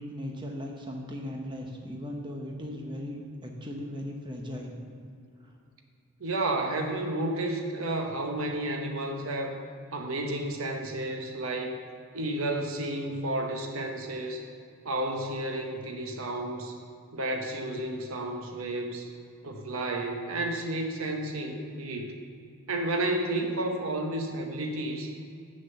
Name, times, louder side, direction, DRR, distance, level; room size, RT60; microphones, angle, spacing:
voice 1, 0.0-4.8 5.4-5.5, left 1 dB, 20° right, 0 dB, 0.9 m, -38 dB
voice 2, 6.2-9.6 9.9-11.8 12.1-14.5 14.8-16.8 17.1-19.1 19.4-22.2 22.7-25.1, right 1 dB, 65° right, 4 dB, 0.9 m, -31 dB
7.5 x 6.5 x 7.0 m, 2.4 s
head